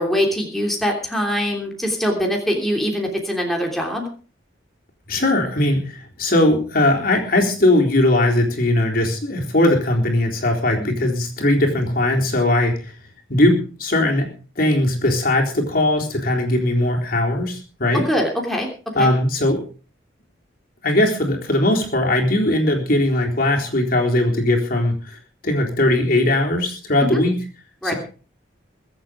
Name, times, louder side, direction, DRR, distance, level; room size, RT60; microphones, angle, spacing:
voice 1, 0.0-4.1 10.8-10.9 17.9-18.7 19.0-19.1 27.0-27.2 27.8-27.9, equal, ahead, 0 dB, 3.1 m, -23 dB
voice 2, 5.1-12.9 13.3-14.3 14.6-18.0 19.0-19.6 20.8-25.2 25.4-27.4 27.8-27.9, left 1 dB, 45° left, 1 dB, 3.9 m, -19 dB
23.5 x 8.2 x 5.1 m, 0.39 s
head